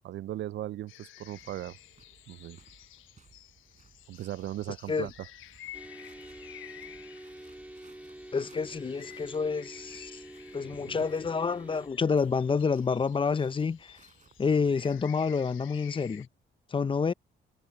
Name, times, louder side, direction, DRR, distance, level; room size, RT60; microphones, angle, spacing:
voice 1, 0.0-1.8 2.3-2.6 4.1-5.3 10.8-11.0, right 13 dB, 65° right, 0.4 m, -38 dB
sound 1, 0.9-16.3, left 13 dB, 85° left, 1.2 m, -52 dB
sound 2, 1.2-15.2, right 5 dB, 40° right, 5.5 m, -62 dB
sound 3, 5.7-11.9, right 1 dB, 5° right, 1.7 m, -47 dB
voice 2, 8.3-10.2 10.5-13.9 14.4-16.3 16.7-17.1, left 5 dB, 25° left, 0.5 m, -28 dB
cardioid pair, 90°, 20 cm